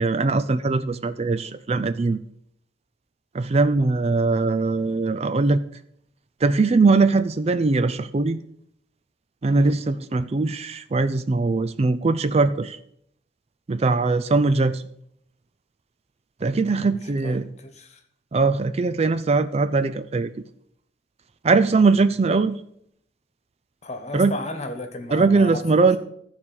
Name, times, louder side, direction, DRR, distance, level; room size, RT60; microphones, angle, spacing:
voice 1, 0.0-2.2 3.3-5.6 6.4-8.4 9.4-12.8 13.7-14.8 16.4-17.5 18.3-20.3 21.4-22.6 24.1-24.3 25.1-26.0, right 3 dB, 35° right, 12 dB, 0.4 m, -21 dB
voice 2, 17.2-18.0 22.3-22.4 23.8-25.9, left 2 dB, 35° left, 7 dB, 1.3 m, -34 dB
14.0 x 4.9 x 7.0 m, 0.69 s
head